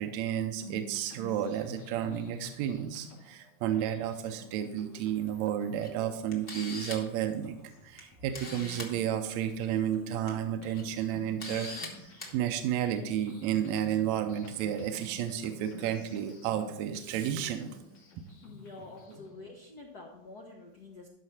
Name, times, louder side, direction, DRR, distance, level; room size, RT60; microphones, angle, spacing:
voice 1, 0.0-7.6 7.8-17.8, right 10 dB, 80° right, 7 dB, 1.9 m, -32 dB
sound 1, 0.6-19.4, left 1 dB, 85° left, 3.7 m, -52 dB
Camera, 5.8-5.9 6.3-7.1 8.0-8.1 8.3-8.9 10.1-10.3 10.7-10.8 11.4-11.9 12.2-12.3, left 3 dB, 40° left, 0.8 m, -40 dB
voice 2, 18.4-21.1, left 3 dB, 70° left, 0 dB, 0.9 m, -48 dB
12.5 x 5.8 x 4.2 m, 0.83 s
omnidirectional pair, 3.3 m